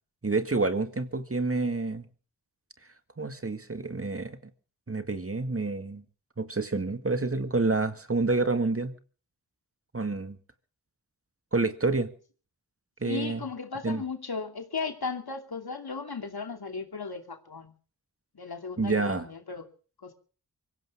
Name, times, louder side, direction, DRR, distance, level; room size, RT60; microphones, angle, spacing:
voice 1, 0.2-2.1 3.2-4.4 4.9-6.0 6.4-8.9 9.9-10.4 11.5-12.1 13.0-13.4 13.8-14.0 18.8-19.3, right 3 dB, 35° right, 2.0 m, -28 dB
voice 2, 13.0-17.7 18.3-19.7 20.0-20.1, left 4 dB, 70° left, 2.8 m, -36 dB
24.5 x 16.5 x 3.6 m
wide cardioid pair, 60°, 39 cm